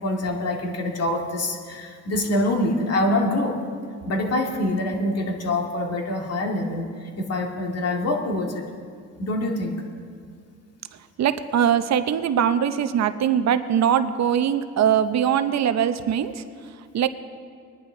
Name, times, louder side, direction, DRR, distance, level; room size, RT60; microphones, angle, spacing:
voice 1, 0.0-3.6 4.1-8.6 9.2-9.8, left 1 dB, 55° left, 1 dB, 2.1 m, -25 dB
voice 2, 11.2-16.4 16.9-17.1, right 9 dB, 60° right, 11 dB, 0.7 m, -21 dB
20.5 x 10.5 x 3.8 m, 2.2 s
cardioid pair, 90°, 30 cm